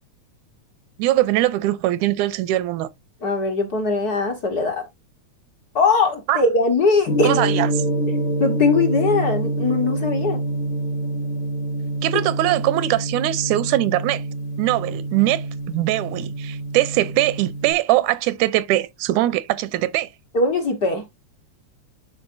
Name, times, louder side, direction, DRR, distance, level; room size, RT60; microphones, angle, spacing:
voice 1, 1.0-2.9 6.3-6.4 7.2-7.7 12.0-14.2 14.6-20.1, right 15 dB, 85° right, 2.0 m, -21 dB
voice 2, 3.2-4.9 5.7-7.4 8.4-10.4 20.3-21.0, left 3 dB, 55° left, 1.1 m, -20 dB
Gong, 7.1-17.7, right 1 dB, 90° left, 3.1 m, -26 dB
11.5 x 4.2 x 2.6 m
omnidirectional pair, 3.4 m